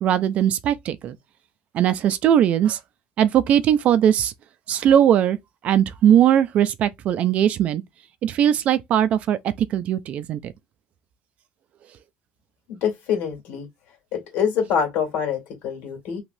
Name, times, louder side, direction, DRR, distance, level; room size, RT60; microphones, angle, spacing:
voice 1, 0.0-1.2 1.7-2.8 3.2-4.3 4.7-5.4 5.6-7.8 8.2-10.5, right 10 dB, 40° right, 0.3 m, -19 dB
voice 2, 12.7-13.7 14.1-16.2, left 7 dB, 75° left, 1.8 m, -25 dB
3.2 x 2.8 x 2.6 m
cardioid pair, 175°, 4 cm